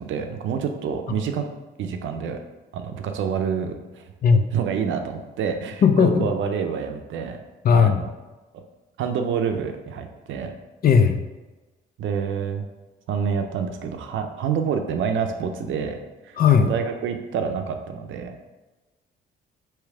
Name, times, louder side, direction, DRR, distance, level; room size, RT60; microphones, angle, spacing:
voice 1, 0.0-1.5 1.8-2.4 2.7-4.1 4.5-7.4 7.7-8.1 9.0-10.5 12.0-12.6 13.1-16.0 16.2-18.4, right 6 dB, 75° right, 6 dB, 0.5 m, -27 dB
voice 2, 5.8-6.3 7.6-8.0 10.8-11.2 16.4-16.7, left 6 dB, 50° left, 7 dB, 0.5 m, -17 dB
3.3 x 3.0 x 4.7 m, 1.1 s
cardioid pair, 90°, 20 cm